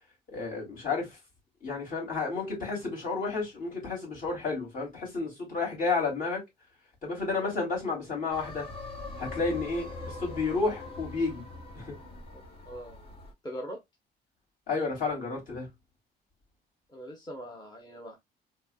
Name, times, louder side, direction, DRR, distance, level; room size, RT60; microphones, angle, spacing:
voice 1, 0.3-1.2 1.6-6.4 7.0-8.7 9.2-11.4 11.7-11.9 14.7-15.7, left 4 dB, 55° left, 2.8 m, -31 dB
sound 1, 8.3-13.3, left 2 dB, 70° left, 2.0 m, -42 dB
voice 2, 12.7-13.0 13.4-13.8 16.9-18.1, equal, 25° left, 0.9 m, -41 dB
4.4 x 2.9 x 2.3 m
cardioid pair, 110°, 17 cm